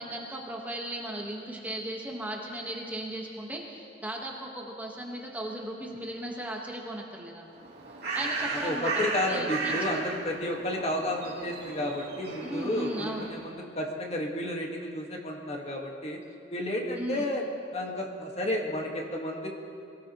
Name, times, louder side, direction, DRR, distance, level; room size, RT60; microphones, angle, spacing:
voice 1, 0.0-7.5 8.1-9.9 12.4-13.3 16.9-17.2, right 1 dB, 10° right, -1 dB, 1.3 m, -37 dB
Bird, 7.5-13.6, right 3 dB, 60° right, 2.9 m, -35 dB
voice 2, 8.6-16.2 16.5-17.4 17.7-19.5, left 1 dB, 35° left, 0 dB, 1.6 m, -32 dB
23.0 x 16.0 x 3.0 m, 2.5 s
head